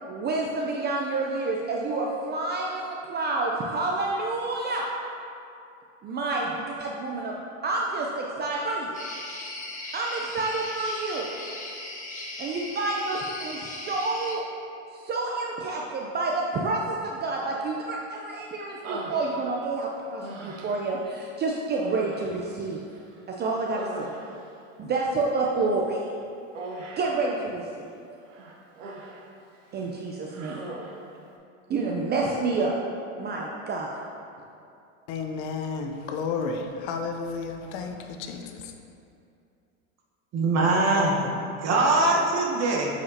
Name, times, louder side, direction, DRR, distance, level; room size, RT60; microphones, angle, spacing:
voice 1, 0.1-4.9 6.0-7.3 7.6-9.0 9.9-11.3 12.4-14.4 14.9-22.8 23.3-24.1 24.8-26.0 27.0-27.9 29.7-30.6 31.7-32.8 33.2-33.9, right 3 dB, 25° right, -1 dB, 0.5 m, -29 dB
sound 1, 8.9-14.4, left 2 dB, 20° left, 1.1 m, -38 dB
Human voice, 18.8-19.7 20.2-20.9 21.7-23.2 23.5-24.6 26.6-27.2 28.3-29.3 29.6-29.9 30.3-31.1, right 3 dB, 80° right, 1.0 m, -39 dB
voice 2, 35.1-38.7, left 4 dB, 60° left, 5 dB, 0.7 m, -32 dB
voice 3, 40.3-42.9, right 2 dB, 45° right, -1 dB, 1.2 m, -23 dB
8.3 x 5.0 x 2.8 m, 2.6 s
hypercardioid pair, 100°, 37 cm